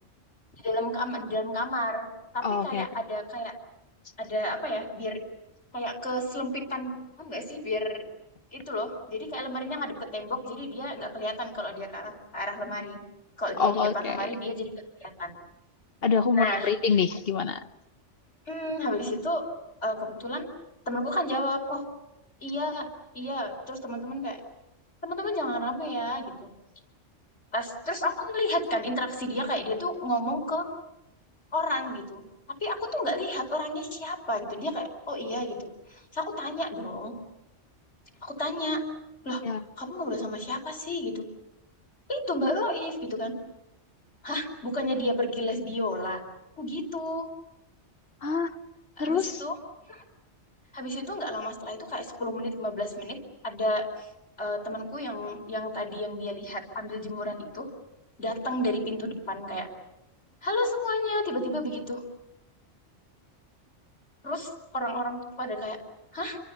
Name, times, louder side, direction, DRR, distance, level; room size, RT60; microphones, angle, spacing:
voice 1, 0.6-2.1 2.3-3.5 4.2-5.2 5.7-8.0 8.5-13.0 13.4-14.7 15.0-15.3 16.3-16.7 18.5-19.4 19.8-20.5 20.8-21.8 22.4-22.9 23.1-24.4 25.0-26.5 27.5-30.7 31.5-32.2 32.6-37.1 38.2-38.8 39.2-39.4 39.8-41.2 42.1-43.4 44.2-46.2 46.6-47.3 49.0-49.6 49.9-50.0 50.7-54.1 54.4-57.7 58.2-59.7 60.4-62.0 64.2-65.8 66.1-66.4, left 1 dB, 70° left, 2 dB, 4.9 m, -31 dB
voice 2, 2.4-2.9 13.6-14.3 16.0-17.6 39.4-39.6 48.2-48.6 49.0-49.4, left 5 dB, 55° left, 11 dB, 1.3 m, -26 dB
29.0 x 25.0 x 7.1 m, 0.91 s
omnidirectional pair, 1.2 m